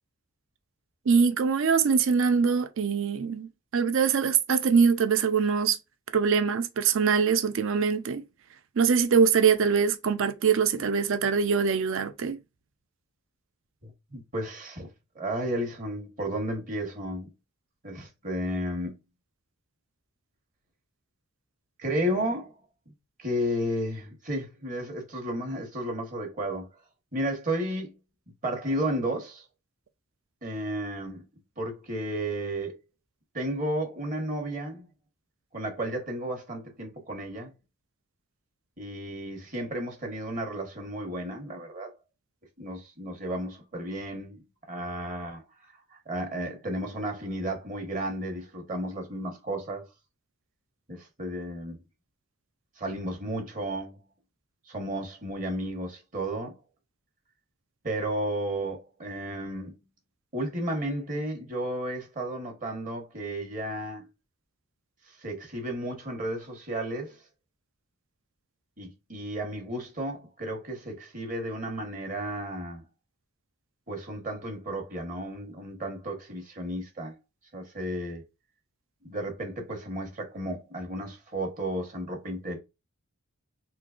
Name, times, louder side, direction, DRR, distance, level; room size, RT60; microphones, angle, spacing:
voice 1, 1.1-5.8 6.1-8.2 8.8-12.4, right 6 dB, 60° right, 0.4 m, -23 dB
voice 2, 13.8-14.9 15.1-17.3 17.8-19.0 21.8-22.5 23.2-26.7 27.1-28.0 28.4-29.4 30.4-31.3 31.6-32.8 33.3-34.9 35.5-37.5 38.8-41.9 42.6-49.9 50.9-51.8 52.8-54.0 54.7-56.6 57.8-59.8 60.3-64.1 65.1-67.2 68.8-72.9 73.9-77.1 77.5-78.2 79.0-82.6, right 1 dB, 35° right, 1.1 m, -33 dB
3.8 x 2.9 x 2.4 m
head